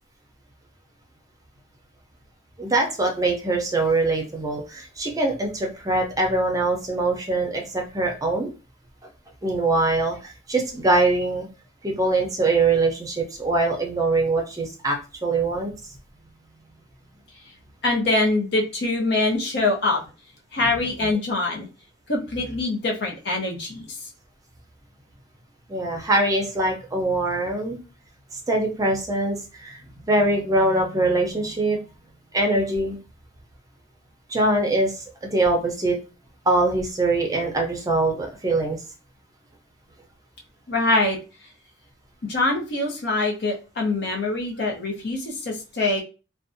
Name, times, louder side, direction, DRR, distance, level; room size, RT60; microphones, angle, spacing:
voice 1, 2.6-8.5 9.4-11.5 11.8-15.0 15.2-15.7 25.7-27.8 28.5-29.8 30.1-31.8 32.3-33.0 34.3-34.9 35.2-36.0 36.5-38.8, right 2 dB, 20° right, 1 dB, 0.5 m, -23 dB
voice 2, 17.8-20.0 20.5-21.7 22.1-23.9 40.7-41.2 42.3-46.0, left 2 dB, 60° left, 0 dB, 0.7 m, -24 dB
2.5 x 2.2 x 2.5 m, 0.32 s
head